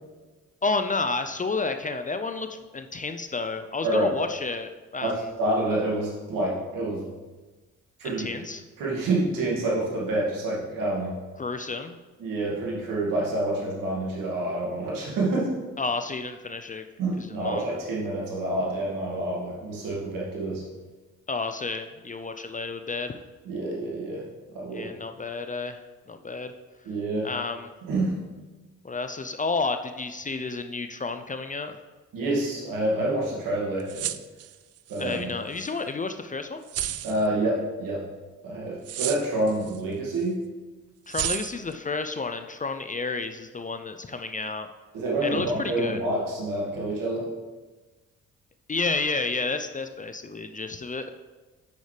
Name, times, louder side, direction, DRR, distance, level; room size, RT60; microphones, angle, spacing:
voice 1, 0.6-5.1 8.0-8.6 11.4-12.0 15.8-16.8 17.2-17.7 21.3-23.2 24.7-25.8 26.1-26.5 27.2-27.7 28.8-31.8 35.0-36.6 41.1-44.7 45.2-46.0 48.7-51.1, left 3 dB, 25° left, 8 dB, 0.5 m, -31 dB
voice 2, 3.8-4.1 5.0-7.1 8.0-8.3 8.8-11.1 12.2-15.5 17.0-20.6 23.4-24.2 24.5-24.9 26.8-27.3 27.8-28.1 32.1-34.1 34.9-35.3 37.0-38.0 38.4-40.4 44.9-47.3, right 2 dB, 70° right, -4 dB, 2.2 m, -27 dB
sound 1, 33.8-35.2 35.6-35.7 36.7-37.3 38.9-39.8 40.2-40.3 41.1-41.7, right 12 dB, 45° right, 0.4 m, -32 dB
8.5 x 6.3 x 3.3 m, 1.3 s
hypercardioid pair, 45°, 34 cm